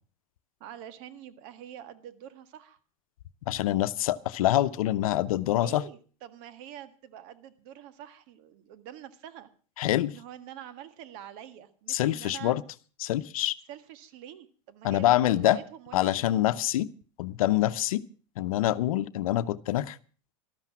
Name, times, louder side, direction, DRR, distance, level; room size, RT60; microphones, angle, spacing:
voice 1, 0.6-2.8 5.4-9.5 10.1-12.5 13.7-16.4, right 11 dB, 60° right, 11 dB, 1.7 m, -46 dB
voice 2, 3.5-5.8 9.8-10.1 11.9-12.6 13.0-13.5 14.8-15.6 15.9-16.9 17.2-18.0 18.4-20.0, left 14 dB, 80° left, 14 dB, 0.8 m, -25 dB
13.5 x 12.5 x 6.0 m, 0.40 s
hypercardioid pair, 110°, 18 cm